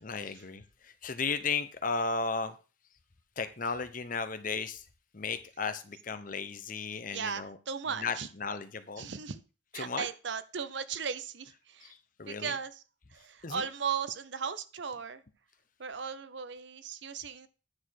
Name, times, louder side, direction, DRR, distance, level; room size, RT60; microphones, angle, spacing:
voice 1, 0.0-2.5 3.4-4.8 5.1-7.5 8.0-8.1 8.4-9.1 9.7-10.1 12.2-12.5 13.4-13.6, left 4 dB, 40° left, 11 dB, 0.8 m, -34 dB
voice 2, 7.1-8.3 9.0-9.4 9.7-11.9 12.3-12.8 13.1-15.2 15.8-17.5, right 6 dB, 60° right, 13 dB, 0.6 m, -37 dB
9.6 x 4.2 x 6.4 m, 0.34 s
head